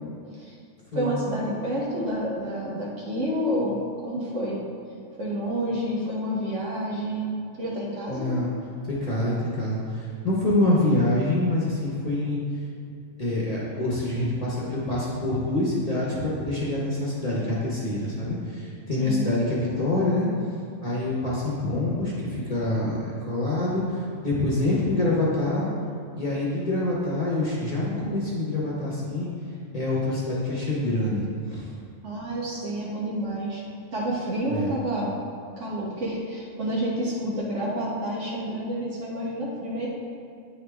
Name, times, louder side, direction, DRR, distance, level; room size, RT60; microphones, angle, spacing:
voice 1, 0.9-4.6 5.2-8.3 19.0-19.4 32.0-33.6 33.9-35.1 35.6-39.9, equal, 60° right, -5 dB, 1.5 m, -29 dB
voice 2, 8.1-8.5 8.8-12.4 13.2-20.3 20.8-25.7 26.2-29.3 29.7-31.7 34.5-34.7, left 2 dB, 30° left, -6 dB, 1.0 m, -26 dB
8.9 x 3.6 x 3.4 m, 2.4 s
omnidirectional pair, 1.4 m